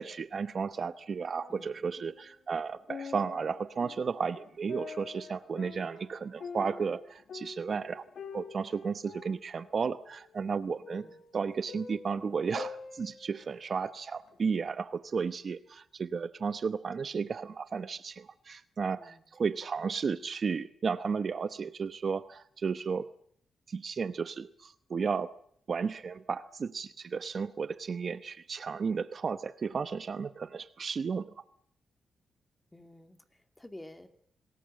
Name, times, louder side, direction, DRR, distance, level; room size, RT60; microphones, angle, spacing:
voice 1, 0.0-8.0 8.3-11.1 11.3-23.1 23.7-25.3 25.7-31.3, right 5 dB, 50° right, 13 dB, 0.9 m, -33 dB
sound 1, 1.4-2.3 2.7-13.8 14.3-14.4, left 6 dB, 65° left, 1.9 m, -46 dB
voice 2, 1.5-1.9 11.0-11.2 19.0-19.5 32.7-34.1, left 1 dB, 15° left, 7 dB, 2.5 m, -51 dB
27.0 x 19.5 x 7.6 m, 0.65 s
cardioid pair, 90°, 0 cm